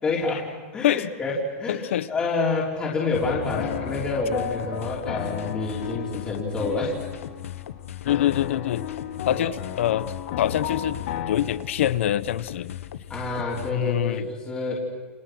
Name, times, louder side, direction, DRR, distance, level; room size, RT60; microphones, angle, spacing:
voice 1, 0.0-7.0 9.3-9.5 13.1-14.8, left 3 dB, 15° left, -4 dB, 3.6 m, -28 dB
voice 2, 1.7-2.1 8.0-8.8 9.2-11.0 11.3-12.7 13.7-14.3, left 12 dB, 70° left, 16 dB, 1.1 m, -25 dB
sound 1, 3.1-13.7, left 11 dB, 85° left, 1.5 m, -38 dB
sound 2, 3.2-7.8 8.1-11.4, left 9 dB, 45° left, 2.1 m, -34 dB
29.5 x 29.0 x 6.3 m, 1.4 s
supercardioid pair, 170°, 7 cm